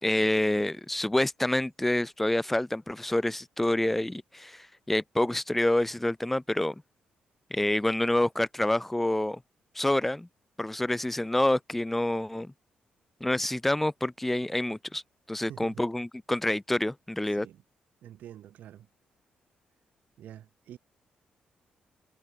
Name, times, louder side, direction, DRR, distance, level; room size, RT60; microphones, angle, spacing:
voice 1, 0.0-6.7 7.5-9.4 9.7-10.3 10.6-12.5 13.2-15.0 15.3-17.5, left 1 dB, 5° left, 1.1 m, -27 dB
voice 2, 15.3-15.9 17.3-17.6 18.0-18.9 20.2-20.8, right 11 dB, 80° right, 4.8 m, -47 dB
cardioid pair, 150°, 3 cm